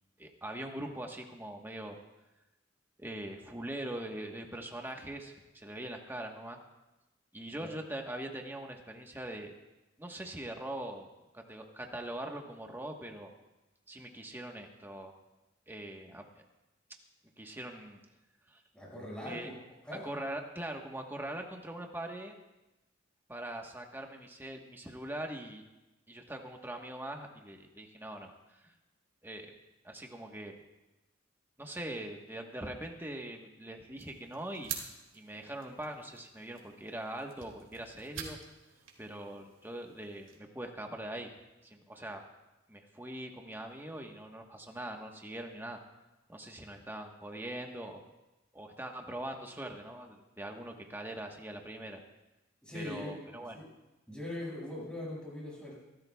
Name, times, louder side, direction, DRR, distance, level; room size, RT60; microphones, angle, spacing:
voice 1, 0.2-2.0 3.0-6.6 7.3-9.5 10.0-11.1 11.3-13.3 13.9-15.1 15.7-16.2 17.4-18.0 18.5-18.6 19.2-19.5 20.0-22.3 23.3-25.6 26.1-28.3 29.2-29.5 29.8-30.6 31.6-34.8 35.1-38.4 39.0-41.3 41.6-42.2 42.7-45.8 46.3-48.0 48.5-52.0 52.7-53.6, right 1 dB, 10° right, 2 dB, 1.2 m, -42 dB
voice 2, 18.7-19.6 19.8-20.0 52.6-53.1 53.5-53.7 54.1-55.8, left 1 dB, 5° left, -5 dB, 5.5 m, -41 dB
sound 1, 33.9-40.4, right 7 dB, 80° right, 2.1 m, -47 dB
25.0 x 13.0 x 2.3 m, 1.0 s
head